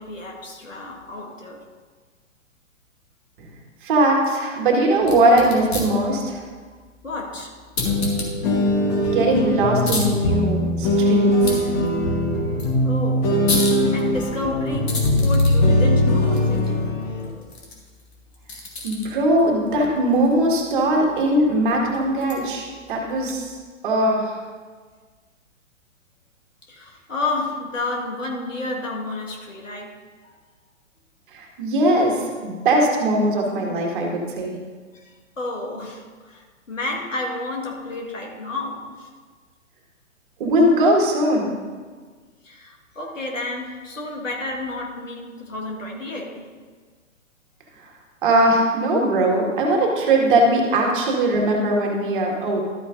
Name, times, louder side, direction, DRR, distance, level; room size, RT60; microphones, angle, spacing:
voice 1, 0.0-1.7 7.0-7.6 10.3-10.4 12.8-17.6 21.4-21.6 22.2-22.3 22.9-23.0 26.7-30.4 33.4-33.5 34.9-39.1 42.4-46.6 49.0-49.2 51.3-51.4, left 2 dB, 70° left, -1 dB, 1.8 m, -31 dB
voice 2, 3.8-6.4 9.1-11.7 18.8-23.5 23.8-24.3 31.3-34.6 40.4-41.6 48.2-52.6, right 1 dB, 40° right, 0 dB, 1.8 m, -20 dB
sound 1, 5.0-23.6, left 2 dB, 50° left, 2.3 m, -35 dB
sound 2, 7.8-17.3, left 1 dB, 30° left, 1.3 m, -20 dB
13.0 x 9.0 x 2.6 m, 1.5 s
figure-of-eight pair, 120°, 40 cm